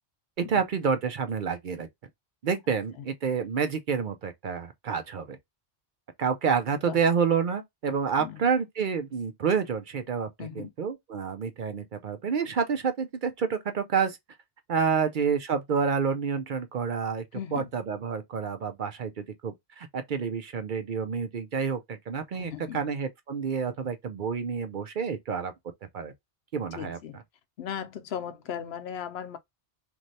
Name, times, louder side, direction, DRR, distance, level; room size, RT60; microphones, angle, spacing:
voice 1, 0.4-1.9 2.4-5.4 6.2-14.2 14.7-17.2 17.5-25.5 25.9-26.1 26.5-27.0, right 6 dB, 55° right, 0.7 m, -28 dB
voice 2, 10.4-10.7 14.9-15.0 17.3-17.7 22.3-22.8 26.7-27.2 27.6-29.4, left 8 dB, 75° left, 0.8 m, -37 dB
3.1 x 2.6 x 2.6 m
omnidirectional pair, 1.1 m